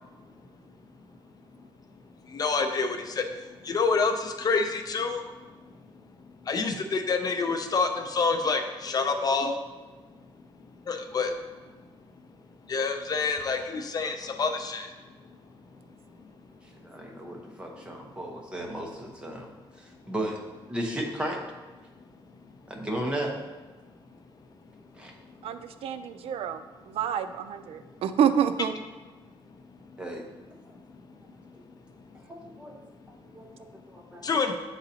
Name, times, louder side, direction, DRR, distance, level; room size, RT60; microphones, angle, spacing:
voice 1, 2.3-5.2 6.4-9.6 10.8-11.4 12.7-14.9 34.2-34.5, left 4 dB, 40° left, 6 dB, 0.5 m, -27 dB
voice 2, 16.6-19.5 19.8-20.4 20.7-21.4 22.7-23.3 24.9-25.1 30.0-30.3 32.3-32.8 33.1-34.2, right 1 dB, 10° right, 0 dB, 1.0 m, -35 dB
voice 3, 25.4-26.6 26.9-28.7, right 8 dB, 80° right, 10 dB, 0.4 m, -27 dB
9.4 x 4.0 x 2.8 m, 1.3 s
cardioid pair, 135°, 10 cm